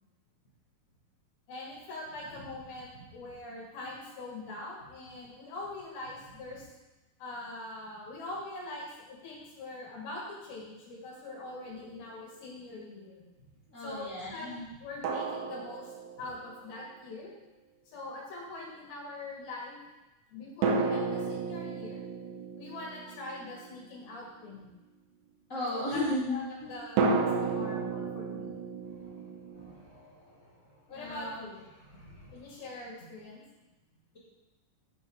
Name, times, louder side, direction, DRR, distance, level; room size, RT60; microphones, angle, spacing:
voice 1, 1.5-6.7 7.2-13.2 13.8-14.5 14.8-15.9 16.2-17.3 17.9-19.8 20.3-22.0 22.6-24.7 25.7-28.6 30.9-31.6 32.3-33.4, left 2 dB, 80° left, -5 dB, 3.9 m, -43 dB
sound 1, 11.4-11.6 15.0-16.6 20.6-24.3 27.0-29.7, right 4 dB, 75° right, 2.2 m, -32 dB
voice 2, 13.7-14.7 25.5-26.7 29.5-30.4 30.9-31.4 32.1-32.3, left 1 dB, 25° left, -8 dB, 1.8 m, -36 dB
9.2 x 5.6 x 3.7 m, 1.1 s
omnidirectional pair, 4.3 m